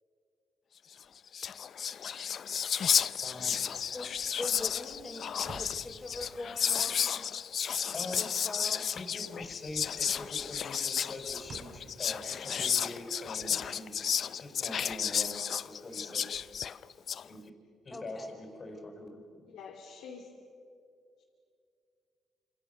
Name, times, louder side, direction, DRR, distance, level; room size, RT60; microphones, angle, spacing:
Whispering, 1.0-1.1 1.3-17.2, left 8 dB, 55° left, 0.6 m, -32 dB
sound 1, 2.9-9.3 9.6-15.0, right 3 dB, 50° right, 4.7 m, -56 dB
voice 1, 3.2-3.6 7.9-8.2 8.9-14.1 14.4-15.4 15.6-16.3 17.2-17.5 17.8-19.5, left 2 dB, 35° left, 2 dB, 5.1 m, -43 dB
voice 2, 3.9-5.2 5.6-7.1 8.2-8.9 17.9-18.3, left 2 dB, 15° left, -4 dB, 5.3 m, -42 dB
voice 3, 19.5-20.3 21.2-21.3, left 5 dB, 85° left, -1 dB, 3.2 m, -47 dB
29.0 x 28.0 x 6.9 m, 2.4 s
cardioid pair, 90°, 0 cm